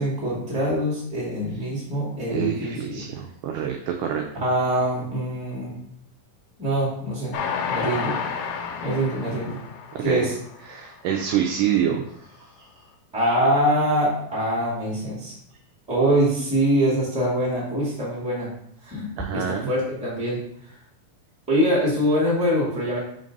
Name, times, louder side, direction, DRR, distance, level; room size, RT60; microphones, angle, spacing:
voice 1, 0.0-3.1 4.3-5.7 6.6-7.3 7.7-8.1 8.8-9.6 10.0-10.3 13.1-15.3 15.9-18.5 18.8-20.4 21.5-23.0, equal, 5° right, -6 dB, 1.3 m, -24 dB
voice 2, 2.3-4.3 9.9-10.3 10.7-12.1 12.6-12.7 19.2-19.7, right 9 dB, 80° right, 2 dB, 1.9 m, -26 dB
Train, 7.3-10.8 11.3-11.4 11.7-11.8, left 6 dB, 85° left, 2.6 m, -30 dB
5.1 x 3.8 x 5.3 m, 0.69 s
omnidirectional pair, 4.3 m